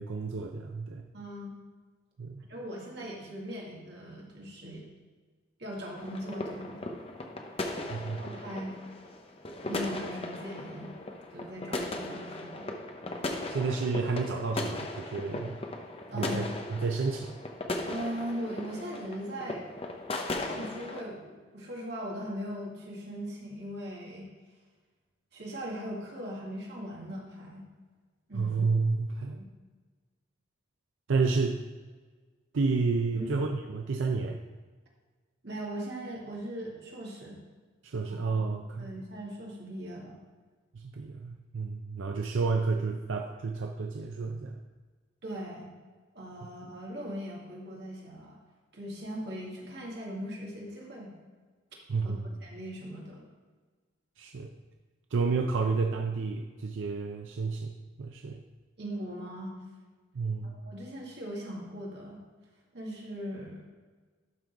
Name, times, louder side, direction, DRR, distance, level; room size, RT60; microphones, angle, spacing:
voice 1, 0.0-1.0 2.2-2.4 7.9-8.2 13.5-15.6 16.1-17.4 28.3-29.4 31.1-31.6 32.5-34.4 37.8-38.9 40.7-44.6 51.9-52.2 54.2-54.5 55.1-57.7 58.0-58.4 60.1-60.5, right 4 dB, 90° right, 4 dB, 0.5 m, -30 dB
voice 2, 1.1-1.5 2.5-4.9 5.6-6.9 8.2-8.8 9.6-11.0 11.3-12.7 16.1-16.4 17.9-19.6 20.4-24.3 25.3-27.6 28.3-28.6 29.4-29.5 33.1-33.4 35.4-37.4 38.1-38.2 38.8-40.2 45.2-45.7 46.1-48.4 48.7-51.1 52.0-52.1 52.4-53.2 58.8-59.5 60.4-62.2 62.7-63.6, equal, 60° right, -3 dB, 2.1 m, -39 dB
sound 1, 6.0-21.0, left 2 dB, 30° left, 0.7 m, -37 dB
12.0 x 3.9 x 4.6 m, 1.4 s
head